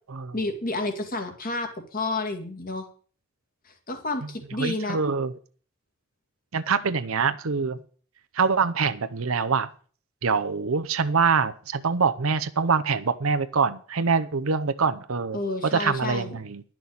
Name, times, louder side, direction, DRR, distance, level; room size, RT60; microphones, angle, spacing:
voice 1, 0.3-2.9 3.7-5.0 15.3-16.4, left 2 dB, 45° left, 5 dB, 2.1 m, -30 dB
voice 2, 4.6-5.3 6.5-7.8 8.3-9.7 10.2-16.6, right 5 dB, 85° right, 10 dB, 0.8 m, -24 dB
11.0 x 6.1 x 8.5 m, 0.43 s
head